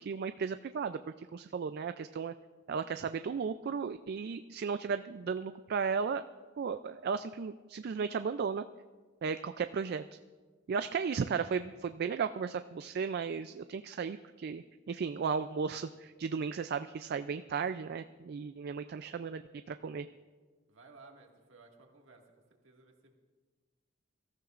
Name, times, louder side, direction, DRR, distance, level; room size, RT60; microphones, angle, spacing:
voice 1, 0.0-2.3 2.7-6.2 6.6-8.6 9.2-10.0 10.7-19.4 19.7-20.1, right 6 dB, 50° right, 10 dB, 0.3 m, -35 dB
voice 2, 20.7-22.2 22.6-23.2, right 3 dB, 70° right, 1 dB, 1.9 m, -57 dB
24.0 x 14.0 x 2.5 m, 1.4 s
head